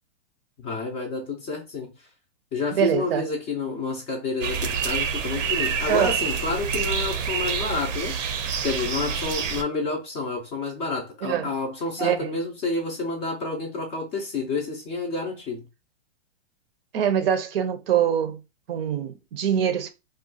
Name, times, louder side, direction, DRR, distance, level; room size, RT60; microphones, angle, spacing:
voice 1, 0.6-1.9 2.5-8.2 8.6-15.6, left 3 dB, 15° left, 0.4 m, -29 dB
voice 2, 2.7-3.2 5.9-6.2 11.2-11.5 12.0-12.2 16.9-18.4 18.7-19.9, right 9 dB, 55° right, 0.6 m, -24 dB
sound 1, 4.4-9.6, right 6 dB, 90° right, 0.8 m, -27 dB
2.5 x 2.3 x 3.8 m
hypercardioid pair, 145°, 36 cm